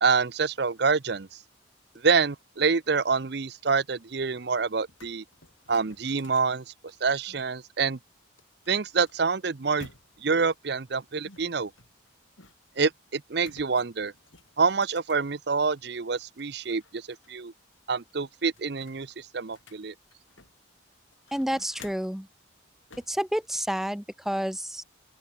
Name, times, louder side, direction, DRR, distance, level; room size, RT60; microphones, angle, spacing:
voice 1, 0.0-1.3 2.0-5.2 5.7-6.6 7.0-8.0 8.7-9.9 10.2-11.7 12.8-14.1 14.6-17.5 17.9-19.9, right 5 dB, 55° right, 0.7 m, -26 dB
sound 1, 4.4-4.5 4.7-7.5 8.4-10.4 11.2-12.8 13.4-15.8 16.2-17.3 17.6-17.7 18.1-20.7 21.1-22.2 22.9-23.2, left 3 dB, 85° left, 6.5 m, -54 dB
voice 2, 21.3-22.3 23.1-24.8, equal, ahead, 0.3 m, -29 dB
open air
head